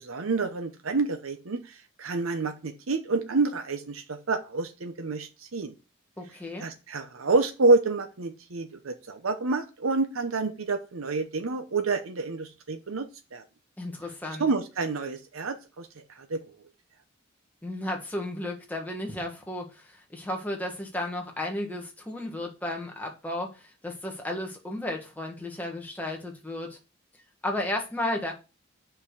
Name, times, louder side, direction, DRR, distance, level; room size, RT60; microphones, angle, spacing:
voice 1, 0.0-5.7 6.6-13.1 13.3-13.4 14.4-15.9 16.2-16.4, right 3 dB, 85° right, 0.9 m, -28 dB
voice 2, 6.2-6.7 13.8-14.5 17.6-26.8 27.4-28.3, left 1 dB, 10° left, 1.5 m, -33 dB
5.8 x 5.0 x 6.5 m
head